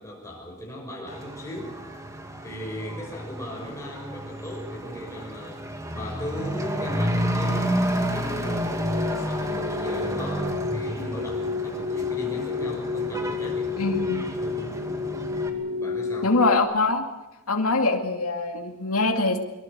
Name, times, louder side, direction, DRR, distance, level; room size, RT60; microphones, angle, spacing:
voice 1, 0.0-1.8 2.4-5.6 5.9-7.7 8.1-15.1 15.7-16.3, left 1 dB, 15° left, -2 dB, 6.2 m, -37 dB
Truck / Accelerating revving vroom, 1.1-15.5, equal, 15° right, 2.1 m, -31 dB
sound 1, 8.4-16.6, left 4 dB, 50° right, 2.6 m, -31 dB
voice 2, 13.8-14.2 16.2-17.1 17.5-19.4, left 3 dB, 75° left, 3 dB, 2.3 m, -23 dB
23.5 x 23.5 x 6.8 m, 1.0 s
head